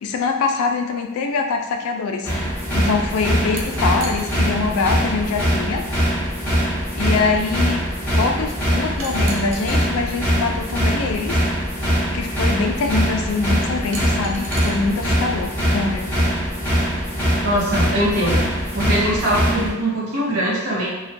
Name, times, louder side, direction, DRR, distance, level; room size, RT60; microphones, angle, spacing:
voice 1, 0.0-2.4 2.7-5.8 7.0-7.8 8.2-11.4 12.1-16.1, left 4 dB, 75° left, 4 dB, 0.3 m, -24 dB
sound 1, 2.2-19.7, equal, 10° left, 0.6 m, -22 dB
sound 2, 3.5-4.4 5.6-5.7 9.0-9.8 11.2-11.3 13.9-14.7, right 3 dB, 60° right, 0.4 m, -34 dB
voice 2, 17.4-18.5 18.7-20.9, equal, 75° right, -5 dB, 0.8 m, -21 dB
2.4 x 2.1 x 2.5 m, 1.1 s
head